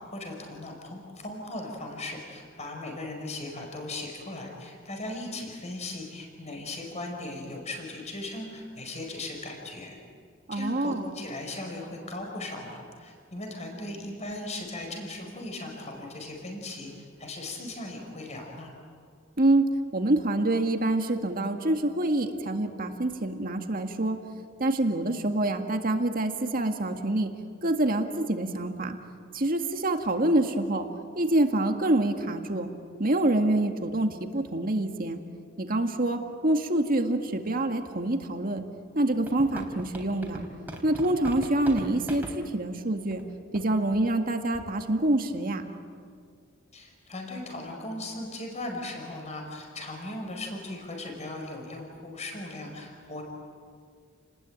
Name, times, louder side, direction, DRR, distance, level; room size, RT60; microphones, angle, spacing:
voice 1, 0.0-10.0 10.5-18.7 46.7-53.2, left 2 dB, 35° left, 2 dB, 5.0 m, -38 dB
voice 2, 10.5-11.0 19.4-19.6 19.9-24.2 24.6-27.3 27.6-29.0 29.3-30.9 31.2-32.7 33.0-35.2 35.6-38.6 38.9-40.4 40.8-43.2 43.5-45.6, right 1 dB, 45° right, 5 dB, 2.0 m, -26 dB
sound 1, 39.1-42.3 43.1-43.2 43.5-43.7 43.9-44.1 44.5-44.8, equal, 10° right, 3.6 m, -39 dB
30.0 x 20.0 x 9.0 m, 2.2 s
head